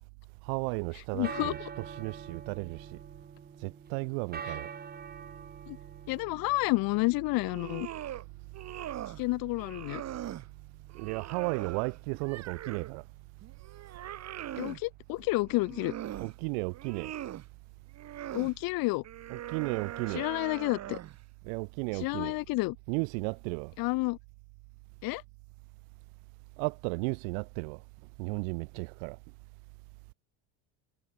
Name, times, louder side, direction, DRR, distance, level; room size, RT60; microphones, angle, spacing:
voice 1, 0.4-3.0 3.6-4.7 10.9-13.1 16.2-17.1 19.3-20.3 21.4-22.4 22.9-23.7 26.6-27.8 28.2-29.2, right 40 dB or more, 75° right, 0.7 m, -34 dB
sound 1, 0.9-19.9, right 7 dB, 25° right, 1.5 m, -48 dB
voice 2, 1.1-1.5 5.7-5.8 6.1-7.9 9.2-10.0 14.6-15.9 18.3-19.0 20.1-21.0 22.0-22.8 23.8-24.2 25.0-25.2, left 23 dB, 60° left, 0.9 m, -30 dB
sound 2, 7.3-8.2 8.5-9.2 9.6-10.5 10.9-13.0 13.4-14.8 15.5-16.3 16.7-17.5 17.9-18.5 19.0-21.2, right 12 dB, 40° right, 1.8 m, -41 dB
supercardioid pair, 115°, 40 cm